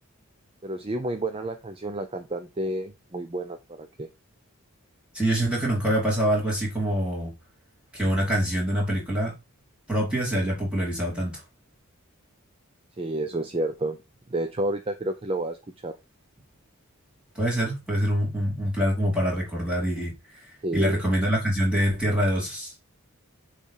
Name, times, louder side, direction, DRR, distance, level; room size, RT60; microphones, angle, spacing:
voice 1, 0.6-4.1 13.0-14.0 14.3-15.6 15.8-16.0 20.6-21.0, right 1 dB, 25° right, 0.5 m, -30 dB
voice 2, 5.1-7.3 7.9-9.4 9.9-11.4 17.3-22.7, equal, 5° right, 2.9 m, -25 dB
7.0 x 3.3 x 5.5 m
head